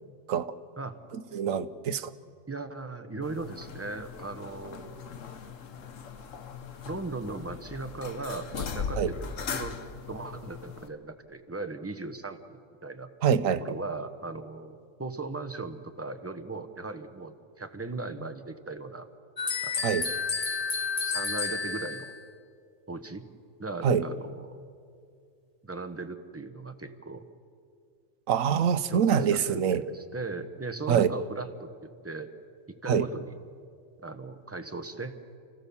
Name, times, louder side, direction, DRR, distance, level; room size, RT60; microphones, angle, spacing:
voice 1, 1.3-2.1 9.0-9.1 13.2-13.6 19.8-20.0 23.8-24.0 28.3-29.8 30.9-31.1 32.9-33.0, right 8 dB, 85° right, 13 dB, 1.2 m, -24 dB
voice 2, 2.5-5.2 6.8-9.8 10.1-13.1 13.6-19.1 19.6-19.9 21.0-22.1 22.9-23.2 23.6-24.6 25.6-27.3 28.9-32.3 32.8-33.4 34.0-35.1, right 3 dB, 10° right, 8 dB, 0.9 m, -38 dB
sound 1, 3.2-10.9, left 5 dB, 75° left, 1.4 m, -39 dB
sound 2, 19.4-22.2, left 4 dB, 30° left, 1.0 m, -31 dB
29.5 x 16.0 x 7.1 m, 2.3 s
omnidirectional pair, 1.3 m